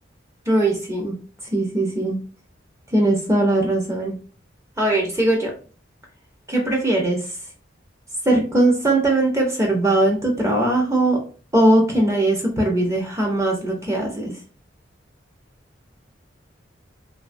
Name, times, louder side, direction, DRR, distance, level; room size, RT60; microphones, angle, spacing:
voice 1, 0.5-1.2 1.5-2.2 2.9-4.2 4.8-5.5 6.5-7.3 8.2-11.2 11.5-14.4, right 1 dB, 15° right, 0 dB, 0.5 m, -20 dB
2.8 x 2.2 x 2.4 m, 0.38 s
head